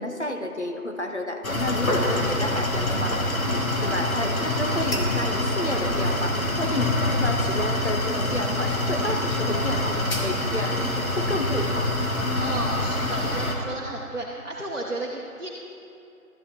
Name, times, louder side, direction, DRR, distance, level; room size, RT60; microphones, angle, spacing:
voice 1, 0.0-12.0, left 1 dB, 50° left, 4 dB, 0.7 m, -31 dB
sound 1, 1.4-13.6, left 1 dB, 65° left, 1.3 m, -25 dB
voice 2, 12.4-15.5, right 2 dB, 55° right, -3 dB, 1.0 m, -33 dB
12.5 x 9.7 x 2.9 m, 2.7 s
figure-of-eight pair, 180°, 45 cm